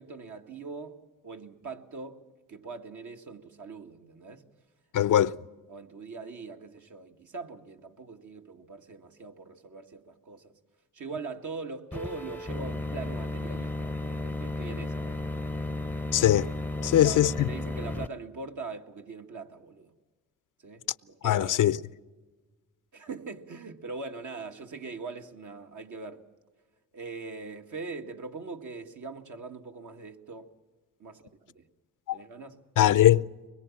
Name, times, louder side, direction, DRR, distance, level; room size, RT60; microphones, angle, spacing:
voice 1, 0.0-4.4 5.7-10.5 10.9-15.3 15.5-15.6 16.8-19.9 20.6-21.6 22.9-26.2 26.9-30.5 31.0-31.7 32.1-32.6, right 4 dB, 60° right, 2.0 m, -42 dB
voice 2, 4.9-5.4 16.1-16.5 16.8-17.5 21.2-21.8 32.1-32.2 32.8-33.2, left 12 dB, 60° left, 0.6 m, -21 dB
sound 1, 11.9-18.1, left 2 dB, 5° left, 0.8 m, -33 dB
24.0 x 21.5 x 7.3 m
cardioid pair, 70°, 35 cm